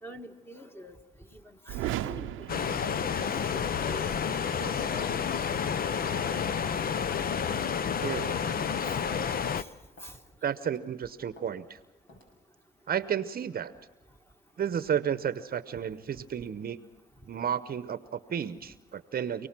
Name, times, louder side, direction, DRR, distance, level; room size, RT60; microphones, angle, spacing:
voice 1, 0.0-0.9 1.7-2.3 3.2-3.4 3.8-5.3 5.8-5.9 9.6-9.7 10.0-10.2, equal, 10° left, 5 dB, 2.0 m, -44 dB
sound 1, 1.7-3.7, right 14 dB, 90° right, 0.7 m, -36 dB
sound 2, 2.5-9.6, left 7 dB, 45° left, 0.8 m, -30 dB
voice 2, 8.0-8.4 10.4-11.8 12.9-13.7 14.6-16.8 17.3-19.5, right 8 dB, 50° right, 13 dB, 0.9 m, -32 dB
sound 3, 10.0-10.2 10.6-10.9 11.4-11.5 12.1-12.3, left 2 dB, 75° left, 6.7 m, -54 dB
28.0 x 18.5 x 6.1 m, 1.1 s
cardioid pair, 90°, 20 cm